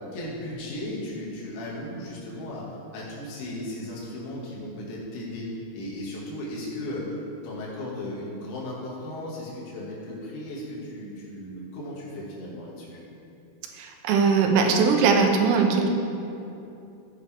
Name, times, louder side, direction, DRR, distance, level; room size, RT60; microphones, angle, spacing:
voice 1, 0.1-2.6 2.9-13.0, left 1 dB, 90° left, -6 dB, 5.0 m, -36 dB
voice 2, 13.8-15.9, right 5 dB, 80° right, 3 dB, 3.5 m, -20 dB
15.5 x 8.1 x 3.6 m, 2.8 s
omnidirectional pair, 5.9 m